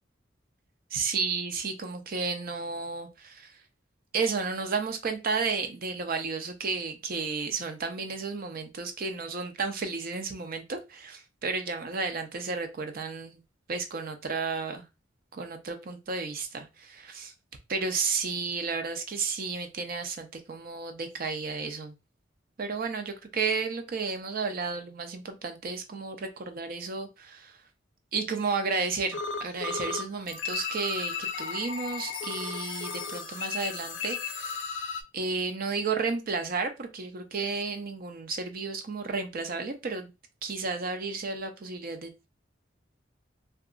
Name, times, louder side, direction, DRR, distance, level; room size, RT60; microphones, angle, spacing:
voice 1, 0.9-3.6 4.1-13.4 13.7-14.8 15.3-17.3 17.7-21.9 22.6-27.6 28.1-34.6 35.1-40.1 40.4-42.3, right 4 dB, 50° right, 0.5 m, -32 dB
sound 1, 29.1-30.0 30.3-35.0, left 5 dB, 75° left, 0.4 m, -34 dB
2.7 x 2.4 x 2.4 m
head